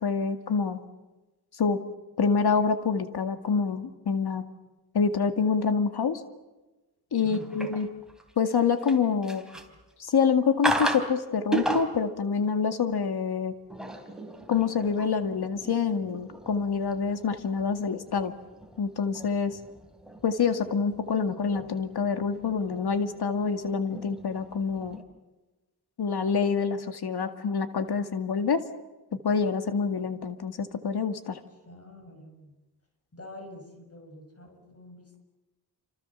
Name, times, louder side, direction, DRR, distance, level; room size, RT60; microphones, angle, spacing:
voice 1, 0.0-0.8 1.6-1.8 2.2-4.4 4.9-6.2 7.1-7.9 8.4-9.4 10.0-13.5 14.5-18.3 18.8-19.6 20.2-25.0 26.0-28.6 29.1-31.4, left 5 dB, 85° left, 8 dB, 2.1 m, -26 dB
voice 2, 7.2-7.7 31.7-32.5 33.1-35.2, left 1 dB, 40° left, 5 dB, 5.9 m, -46 dB
sound 1, 7.3-8.3 8.7-9.9 10.6-11.1 11.5-12.1 13.5-25.0, right 2 dB, ahead, 3.6 m, -36 dB
29.0 x 26.5 x 7.2 m, 1.1 s
wide cardioid pair, 115°, 38 cm